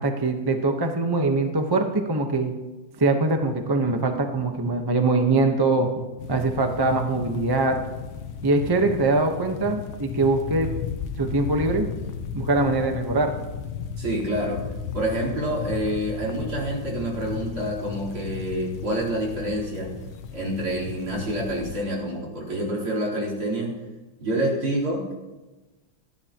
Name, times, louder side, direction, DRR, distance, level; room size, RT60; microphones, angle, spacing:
voice 1, 0.0-2.5 3.0-5.9 6.3-7.8 8.4-10.7 11.2-11.9 12.3-13.3, right 3 dB, 20° right, 4 dB, 0.6 m, -22 dB
sound 1, 6.2-21.8, left 7 dB, 75° left, 1.7 m, -35 dB
voice 2, 14.0-14.6 14.9-19.9 20.3-23.7 24.2-25.1, right 1 dB, 75° right, -3 dB, 4.9 m, -27 dB
29.5 x 11.0 x 3.0 m, 1.2 s
omnidirectional pair, 2.3 m